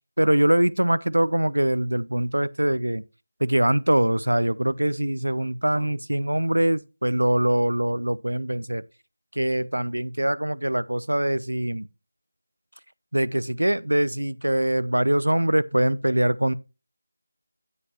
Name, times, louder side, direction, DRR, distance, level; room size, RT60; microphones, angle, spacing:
voice 1, 0.2-3.0 3.4-8.8 9.4-11.9 13.1-16.5, right 1 dB, 90° right, 0.5 m, -23 dB
9.7 x 9.5 x 2.9 m
figure-of-eight pair, 165°, 0 cm